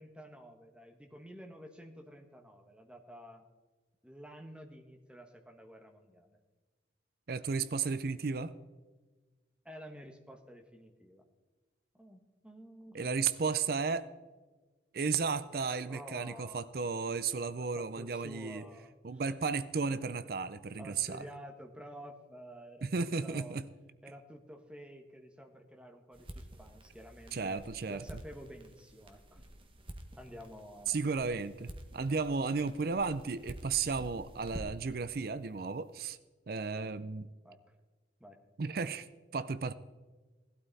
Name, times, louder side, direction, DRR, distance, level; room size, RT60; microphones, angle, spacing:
voice 1, 0.0-3.4 4.0-6.4 9.6-11.2 12.0-13.0 15.9-16.7 17.3-17.5 17.7-19.2 20.8-23.6 24.0-27.6 27.9-29.4 30.2-31.0 36.7-37.0 37.4-37.6 38.2-38.4, equal, 5° right, 3 dB, 1.3 m, -51 dB
voice 2, 7.3-8.5 12.9-14.1 14.9-18.6 19.0-21.2 22.8-23.6 27.3-28.0 30.9-36.2 36.5-37.3 38.6-39.1 39.3-39.7, right 5 dB, 55° right, 15 dB, 0.5 m, -34 dB
sound 1, 26.1-35.0, right 1 dB, 30° right, 1.1 m, -49 dB
17.0 x 12.5 x 4.1 m, 1.3 s
head